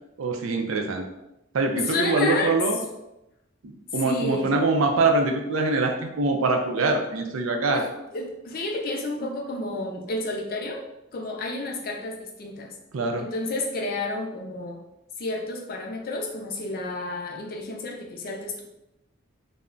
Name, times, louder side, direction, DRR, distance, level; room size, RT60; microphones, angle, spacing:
voice 1, 0.2-1.0 1.5-2.8 3.6-7.8 12.9-13.3, right 3 dB, 85° right, 4 dB, 0.4 m, -24 dB
voice 2, 1.8-2.6 4.0-4.5 7.7-10.8 11.1-12.7 13.2-14.8 15.2-18.6, left 2 dB, 45° left, 0 dB, 0.4 m, -30 dB
2.2 x 2.0 x 3.7 m, 0.89 s
head